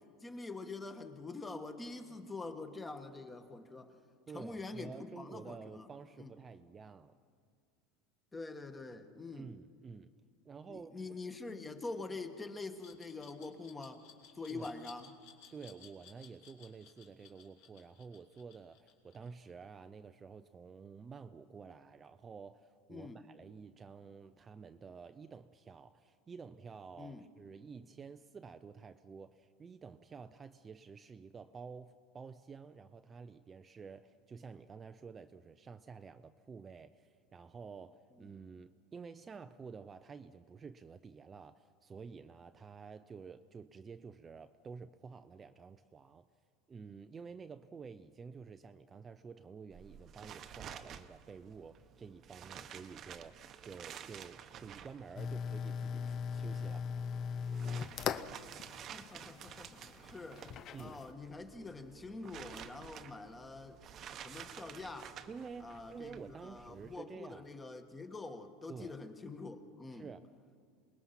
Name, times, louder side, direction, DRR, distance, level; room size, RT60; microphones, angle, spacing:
voice 1, 0.2-3.9 4.3-5.9 6.2-6.3 8.3-9.5 10.7-14.0 14.3-15.1 22.9-23.2 27.0-27.2 58.9-60.4 60.8-63.8 64.1-65.1 65.6-70.1, left 3 dB, 15° left, 1.5 m, -45 dB
voice 2, 4.3-7.2 9.3-10.1 10.4-11.3 14.5-14.8 15.5-46.3 46.7-56.9 60.7-61.0 65.3-67.5 68.7-69.0 69.9-70.6, right 5 dB, 20° right, 0.5 m, -50 dB
Glass, 12.8-19.6, left 8 dB, 65° left, 3.0 m, -58 dB
sound 1, 49.7-67.0, right 9 dB, 35° right, 0.9 m, -52 dB
sound 2, 55.2-61.1, left 7 dB, 40° left, 0.7 m, -40 dB
27.0 x 20.5 x 5.8 m
supercardioid pair, 135°, 0 cm